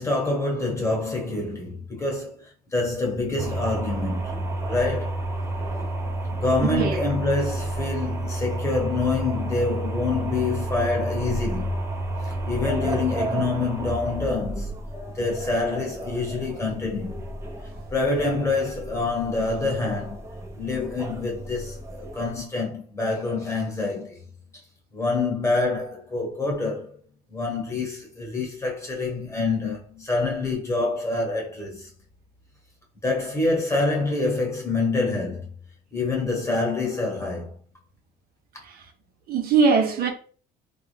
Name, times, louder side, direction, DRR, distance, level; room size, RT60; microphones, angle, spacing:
voice 1, 0.0-5.2 6.3-11.8 12.2-14.7 15.1-17.2 17.9-20.2 20.6-24.2 24.9-27.0 27.3-31.9 33.0-35.5 35.9-37.5, left 3 dB, 15° left, 1.2 m, -26 dB
sound 1, 3.4-22.4, right 1 dB, 15° right, 0.6 m, -31 dB
voice 2, 39.3-40.1, right 5 dB, 65° right, 0.7 m, -21 dB
3.4 x 2.4 x 3.3 m
cardioid pair, 110°, 17 cm